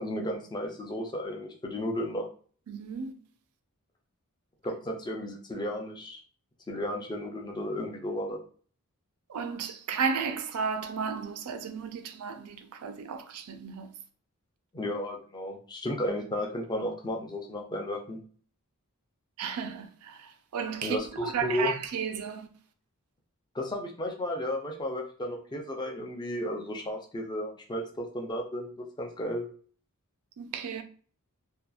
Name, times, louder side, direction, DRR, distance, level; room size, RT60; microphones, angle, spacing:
voice 1, 0.0-2.3 4.6-6.2 6.7-8.4 14.7-18.2 20.8-21.7 23.5-29.5, left 1 dB, 20° left, 0.5 m, -33 dB
voice 2, 2.7-3.1 9.3-13.9 19.4-22.5 30.4-30.8, right 6 dB, 75° right, 0.4 m, -33 dB
2.8 x 2.2 x 2.3 m
head